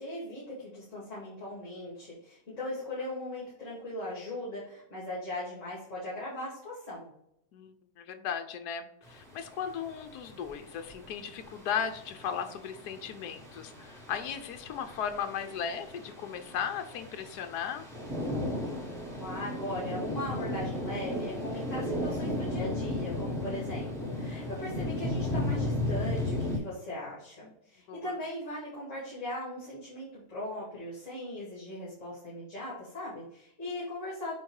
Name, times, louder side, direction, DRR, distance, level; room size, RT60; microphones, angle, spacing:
voice 1, 0.0-7.1 19.2-34.3, left 1 dB, 45° left, -8 dB, 2.7 m, -39 dB
voice 2, 7.5-17.8 27.4-27.5 27.9-28.1, left 8 dB, 70° left, 7 dB, 1.3 m, -36 dB
sound 1, 9.1-26.6, left 1 dB, ahead, 1.3 m, -35 dB
8.2 x 2.9 x 4.8 m, 0.75 s
omnidirectional pair, 1.9 m